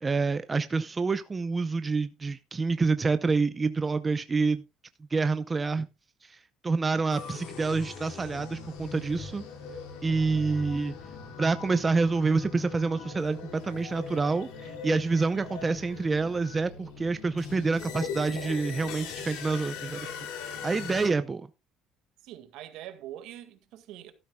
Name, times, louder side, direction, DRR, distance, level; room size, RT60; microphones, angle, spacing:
voice 1, 0.0-4.6 5.1-5.9 6.2-9.4 10.0-11.0 11.4-20.1 20.4-21.5, right 4 dB, 20° right, 0.6 m, -27 dB
sound 1, 7.1-21.1, left 5 dB, 90° left, 2.7 m, -40 dB
voice 2, 22.2-24.1, right 12 dB, 75° right, 1.8 m, -43 dB
13.0 x 12.0 x 2.2 m
cardioid pair, 120°, 0 cm